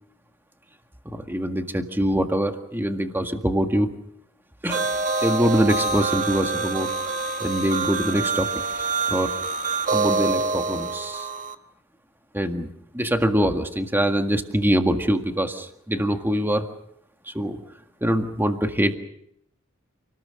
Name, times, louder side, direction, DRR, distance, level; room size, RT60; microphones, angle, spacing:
voice 1, 1.1-3.9 4.6-4.9 5.2-6.9 7.4-8.5 8.8-9.3 9.9-11.3 12.3-12.7 12.9-16.7 17.3-17.6 18.0-19.0, equal, 10° right, 5 dB, 1.8 m, -24 dB
sound 1, 4.7-11.5, right 4 dB, 40° right, 1.4 m, -26 dB
28.5 x 19.5 x 6.5 m, 0.72 s
head